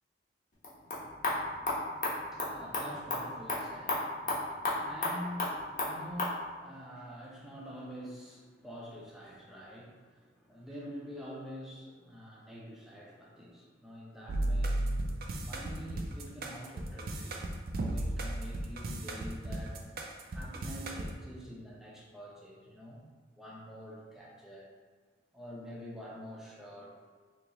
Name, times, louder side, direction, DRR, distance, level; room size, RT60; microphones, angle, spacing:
sound 1, 0.5-6.4, left 2 dB, 45° left, 0.8 m, -35 dB
voice 1, 1.4-14.8 15.4-19.8 20.3-23.0 23.4-24.7 25.3-27.0, equal, ahead, -5 dB, 0.6 m, -47 dB
sound 2, 14.3-21.1, right 1 dB, 50° right, 0.4 m, -34 dB
3.0 x 2.9 x 3.8 m, 1.5 s
head